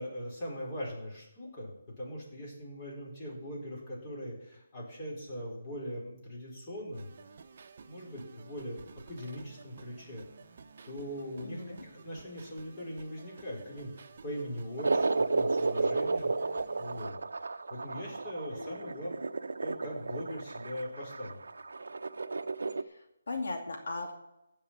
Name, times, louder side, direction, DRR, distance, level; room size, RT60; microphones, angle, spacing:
voice 1, 0.0-7.1 7.9-10.2 10.8-19.1 19.6-21.4, equal, 20° left, -4 dB, 4.3 m, -41 dB
sound 1, 6.9-17.1, right 5 dB, 40° right, 1.0 m, -53 dB
voice 2, 11.4-11.8 18.5-19.0 22.8-24.1, left 3 dB, 70° left, 2 dB, 2.5 m, -39 dB
sound 2, 14.8-22.8, right 3 dB, 85° right, 0.7 m, -32 dB
15.5 x 5.6 x 8.5 m, 0.86 s
hypercardioid pair, 170°, 0 cm